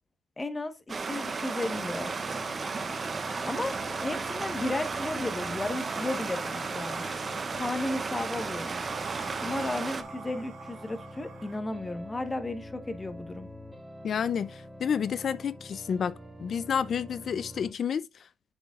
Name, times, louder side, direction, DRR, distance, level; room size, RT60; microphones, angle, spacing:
voice 1, 0.4-2.1 3.4-3.7 4.0-7.0 7.5-8.7 9.4-13.5, left 2 dB, 20° left, 1.2 m, -34 dB
Stream, 0.9-10.0, right 4 dB, 35° right, 0.7 m, -34 dB
sound 1, 1.7-17.7, equal, 5° right, 1.9 m, -46 dB
sound 2, 2.1-11.6, right 5 dB, 65° right, 1.8 m, -46 dB
voice 2, 14.0-16.1 16.4-18.1, left 7 dB, 55° left, 0.5 m, -30 dB
7.6 x 7.1 x 2.4 m
cardioid pair, 90°, 0 cm